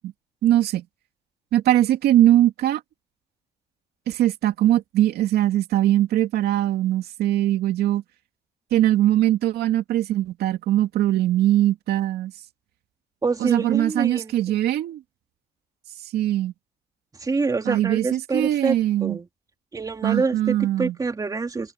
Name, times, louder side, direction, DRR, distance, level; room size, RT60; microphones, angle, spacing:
voice 1, 0.4-0.8 1.5-2.8 4.1-8.0 8.7-12.3 13.4-15.0 16.1-16.5 17.7-19.2 20.0-20.9, right 13 dB, 70° right, 2.4 m, -21 dB
voice 2, 13.2-14.5 17.2-18.8 19.0-19.3 19.7-21.7, right 4 dB, 20° right, 2.5 m, -26 dB
cardioid pair, 110°, 17 cm